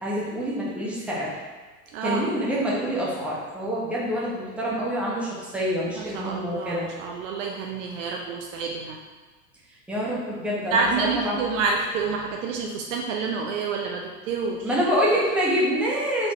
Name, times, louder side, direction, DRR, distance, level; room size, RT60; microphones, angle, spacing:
voice 1, 0.0-1.3 2.0-6.9 9.9-11.4 14.6-16.3, equal, 5° right, -6 dB, 1.0 m, -26 dB
voice 2, 1.9-2.3 5.9-9.0 10.7-14.7, right 4 dB, 55° right, 1 dB, 0.6 m, -28 dB
4.1 x 3.7 x 3.0 m, 1.3 s
hypercardioid pair, 95°, 48 cm